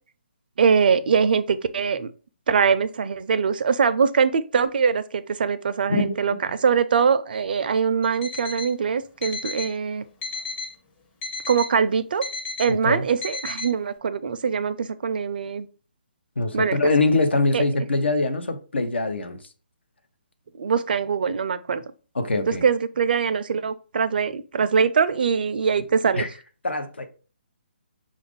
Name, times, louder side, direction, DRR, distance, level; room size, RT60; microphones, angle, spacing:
voice 1, 0.6-2.1 2.5-6.3 6.6-10.1 11.5-12.2 12.6-15.7 16.5-16.8 17.5-17.6 20.6-21.8 22.5-26.3, right 6 dB, 55° right, 0.4 m, -22 dB
Alarm, 8.0-8.7 9.2-9.7 10.2-10.7 11.2-11.7 12.2-12.7 13.2-13.7, left 3 dB, 15° left, 0.6 m, -33 dB
voice 2, 12.7-13.1 16.4-19.4 22.1-22.6 26.1-26.3 26.6-27.1, left 2 dB, 80° left, 0.7 m, -23 dB
5.1 x 2.4 x 3.5 m
figure-of-eight pair, 145°, 6 cm